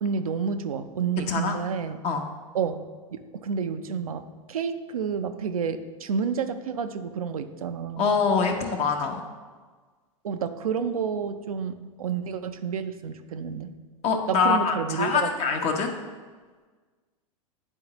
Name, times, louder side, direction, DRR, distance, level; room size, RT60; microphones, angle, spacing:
voice 1, 0.0-2.0 2.5-8.1 10.2-13.7 14.3-15.6, right 6 dB, 85° right, 9 dB, 0.5 m, -30 dB
voice 2, 1.2-1.6 2.0-2.2 8.0-9.2 14.0-15.9, left 5 dB, 35° left, 4 dB, 0.8 m, -24 dB
9.7 x 3.8 x 2.9 m, 1.4 s
hypercardioid pair, 100°, 18 cm